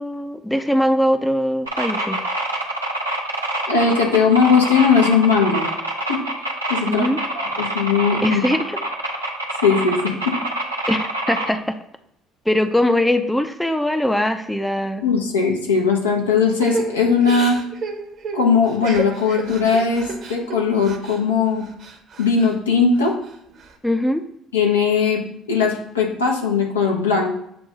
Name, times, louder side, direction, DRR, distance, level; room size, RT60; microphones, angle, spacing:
voice 1, 0.0-2.2 6.9-7.2 8.2-8.8 10.9-11.8 12.5-15.0 23.8-24.2, left 1 dB, 5° left, 8 dB, 0.6 m, -21 dB
sound 1, 1.7-11.5, right 1 dB, 85° right, 0.9 m, -26 dB
voice 2, 3.7-5.7 6.1-6.2 6.7-7.1 7.3-8.4 9.6-10.1 15.0-17.6 18.3-21.7 22.2-23.1 24.5-25.2 25.5-27.3, left 5 dB, 80° left, -1 dB, 1.1 m, -18 dB
Crying sobbing / Breathing, 16.6-21.2 21.6-22.6 23.0-23.7, right 4 dB, 50° right, 1.0 m, -31 dB
7.2 x 2.6 x 5.3 m, 0.73 s
figure-of-eight pair, 55°, 0 cm